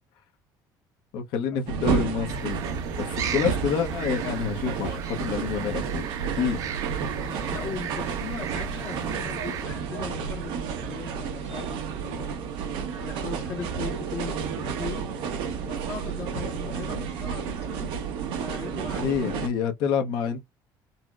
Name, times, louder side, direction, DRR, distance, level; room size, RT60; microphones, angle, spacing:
voice 1, 1.1-2.6 3.0-6.0 6.3-6.6 18.9-20.4, left 7 dB, 70° left, 0.7 m, -28 dB
sound 1, 1.7-19.5, right 6 dB, 90° right, 0.9 m, -31 dB
sound 2, 2.3-9.6, right 9 dB, 45° right, 0.5 m, -37 dB
voice 2, 7.1-12.4 13.0-15.1 15.6-18.0 18.4-19.4, left 6 dB, 35° left, 0.6 m, -39 dB
4.0 x 2.0 x 2.3 m
cardioid pair, 180°, 8 cm